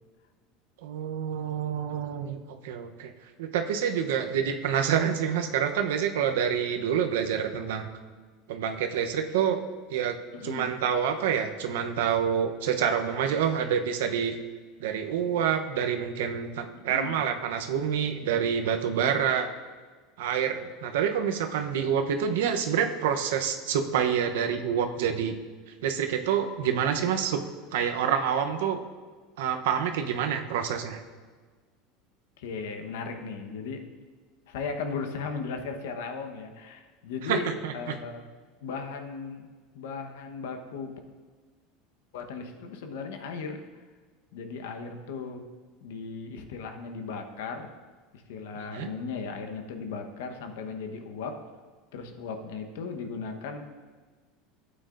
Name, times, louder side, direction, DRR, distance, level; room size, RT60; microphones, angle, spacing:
voice 1, 0.8-2.4 2.6-3.1 3.4-7.9 8.5-9.6 9.9-10.2 10.4-14.4 14.8-19.5 20.2-25.3 25.8-27.4 27.7-28.8 29.4-31.0 37.3-37.9 48.7-48.9, right 8 dB, 90° right, 6 dB, 0.8 m, -27 dB
voice 2, 10.3-10.8 16.7-17.2 18.8-19.2 32.4-33.8 34.5-38.2 38.6-39.5 39.7-41.0 42.1-43.8 44.3-45.4 45.8-47.7 48.1-51.4 51.9-53.6, left 5 dB, 85° left, 5 dB, 1.1 m, -37 dB
12.5 x 8.7 x 2.6 m, 1.4 s
supercardioid pair, 140°, 0 cm